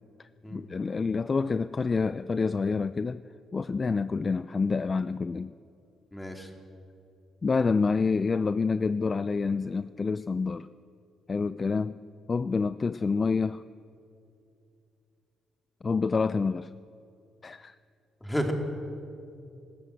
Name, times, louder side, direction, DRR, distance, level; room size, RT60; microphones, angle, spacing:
voice 1, 0.2-3.2 3.5-5.5 7.4-10.7 11.3-12.0 12.3-13.6 15.8-16.7 17.4-17.7, left 4 dB, 35° left, 15 dB, 0.4 m, -28 dB
voice 2, 6.1-6.5 18.2-18.5, equal, 10° left, 3 dB, 3.1 m, -31 dB
26.0 x 14.0 x 8.1 m, 2.6 s
cardioid pair, 90°, 0 cm